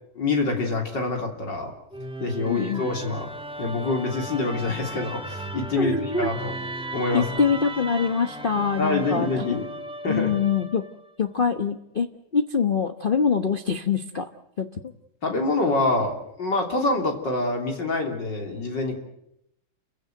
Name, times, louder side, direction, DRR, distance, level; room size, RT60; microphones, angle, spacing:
voice 1, 0.2-1.7 2.2-3.3 3.6-6.5 6.9-7.3 8.6-9.7 10.0-10.4 15.2-19.0, left 2 dB, 55° left, 2 dB, 3.9 m, -26 dB
Musical instrument, 1.9-11.1, right 1 dB, 5° right, 0.9 m, -36 dB
voice 2, 2.5-2.9 5.7-6.3 7.1-9.3 10.1-10.8 11.2-14.3 14.6-14.7, left 5 dB, 35° left, 6 dB, 0.9 m, -24 dB
29.5 x 16.0 x 9.1 m, 0.80 s
omnidirectional pair, 2.3 m